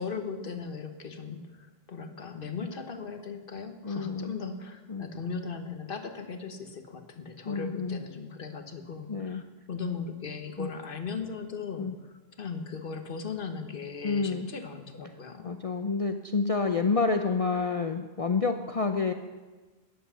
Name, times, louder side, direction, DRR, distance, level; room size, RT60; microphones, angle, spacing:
voice 1, 0.0-15.6, left 5 dB, 55° left, 6 dB, 1.4 m, -38 dB
voice 2, 3.8-4.3 4.9-5.1 7.4-8.0 9.1-9.4 10.6-10.7 11.8-11.9 14.0-14.5 15.4-19.1, left 4 dB, 40° left, 6 dB, 0.6 m, -28 dB
14.0 x 10.5 x 5.7 m, 1.3 s
omnidirectional pair, 1.1 m